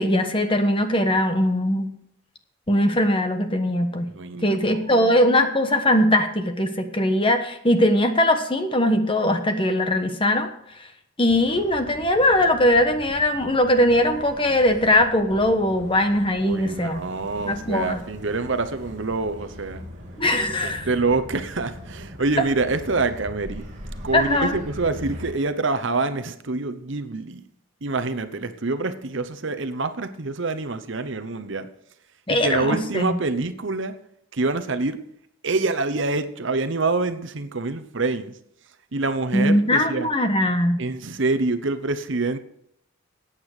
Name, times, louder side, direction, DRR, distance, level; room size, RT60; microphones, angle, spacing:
voice 1, 0.0-1.9 2.7-4.1 4.4-10.5 11.2-17.0 17.4-18.0 20.2-20.9 24.1-24.6 32.3-33.2 39.3-40.8, left 1 dB, 25° left, 1.2 m, -20 dB
voice 2, 4.1-5.2 16.4-19.8 20.6-23.6 24.0-27.4 27.8-31.7 32.3-33.9 34.3-35.0 35.4-38.3 38.9-40.1 40.8-42.4, right 3 dB, 60° right, 0.9 m, -26 dB
Motor vehicle (road), 11.3-25.3, equal, 35° right, 3.0 m, -40 dB
14.0 x 9.0 x 5.0 m
head